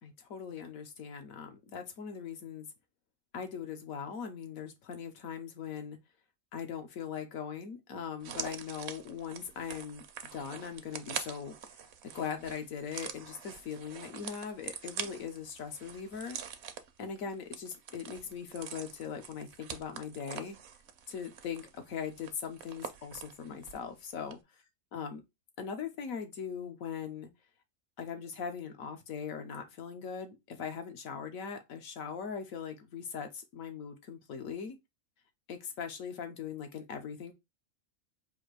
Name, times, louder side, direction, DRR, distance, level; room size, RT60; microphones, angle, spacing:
voice 1, 0.0-2.7 3.3-6.0 6.5-10.0 10.3-11.8 12.1-16.4 17.0-20.6 21.1-24.4 24.9-25.2 25.6-27.3 28.0-34.8 35.5-37.3, left 7 dB, 80° left, 1.3 m, -40 dB
sound 1, 8.2-23.9 24.2-24.3, right 8 dB, 60° right, 0.8 m, -45 dB
4.2 x 2.6 x 4.6 m
omnidirectional pair, 1.4 m